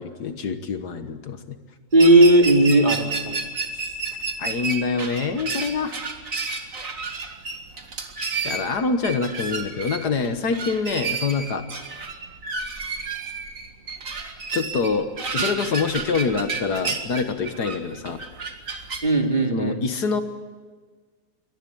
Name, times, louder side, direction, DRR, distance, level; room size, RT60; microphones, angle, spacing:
voice 1, 0.0-1.6 4.4-6.0 8.4-11.6 14.5-18.2 19.5-20.2, left 5 dB, 65° left, 8 dB, 1.9 m, -25 dB
voice 2, 1.9-3.4 19.0-19.8, right 1 dB, 25° right, 3 dB, 2.4 m, -16 dB
sound 1, 1.9-19.0, right 4 dB, 50° right, 2.3 m, -31 dB
23.5 x 19.0 x 8.7 m, 1.5 s
omnidirectional pair, 1.9 m